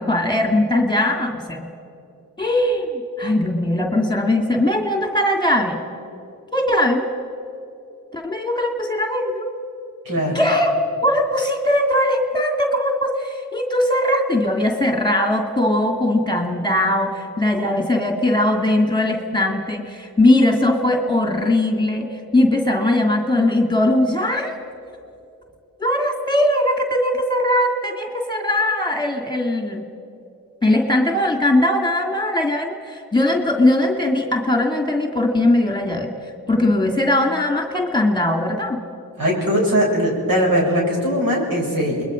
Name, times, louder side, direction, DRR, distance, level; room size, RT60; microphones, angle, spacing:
voice 1, 0.0-1.6 2.4-2.9 3.2-5.8 6.5-7.1 8.1-9.5 10.3-22.1 22.3-24.6 25.8-29.9 30.6-36.1 36.5-38.8, left 1 dB, 10° left, 2 dB, 2.6 m, -20 dB
voice 2, 10.0-10.4 39.2-42.0, equal, 65° right, -2 dB, 7.3 m, -20 dB
29.0 x 21.5 x 5.2 m, 2.8 s
cardioid pair, 55°, 37 cm